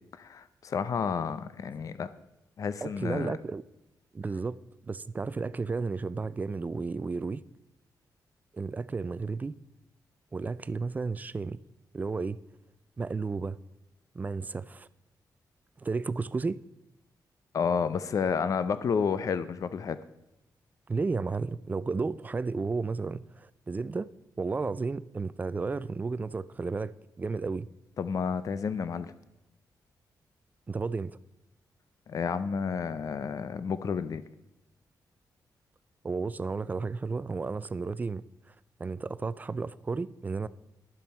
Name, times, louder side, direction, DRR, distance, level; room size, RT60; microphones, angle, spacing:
voice 1, 0.2-2.1 2.6-3.4 17.5-20.0 28.0-29.1 32.1-34.2, left 6 dB, 50° left, 0.6 m, -30 dB
voice 2, 2.8-3.6 4.1-4.6 4.9-7.4 8.5-9.5 10.3-11.6 11.9-12.4 13.0-13.6 14.1-14.9 15.8-16.6 20.9-24.1 24.4-27.7 30.7-31.2 36.0-38.2 38.8-40.5, right 4 dB, 25° right, 0.4 m, -33 dB
12.0 x 7.3 x 5.5 m
wide cardioid pair, 135°, 7 cm